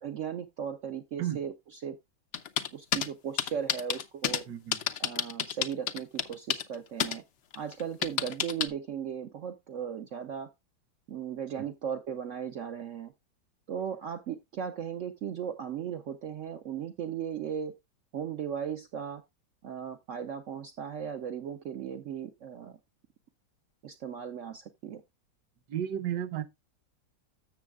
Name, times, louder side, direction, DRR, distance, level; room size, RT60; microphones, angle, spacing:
voice 1, 0.0-2.0 2.7-4.4 5.0-7.2 7.5-10.5 11.1-13.1 13.7-17.7 18.1-19.2 19.6-22.8 23.8-25.0, right 8 dB, 80° right, 0.6 m, -37 dB
sound 1, 2.3-3.1 3.4-4.4 4.7-6.8 7.0-7.2 7.5-8.7, left 8 dB, 80° left, 0.6 m, -29 dB
voice 2, 4.5-4.8 25.7-26.5, right 10 dB, 65° right, 1.2 m, -33 dB
13.0 x 7.1 x 2.3 m
omnidirectional pair, 2.1 m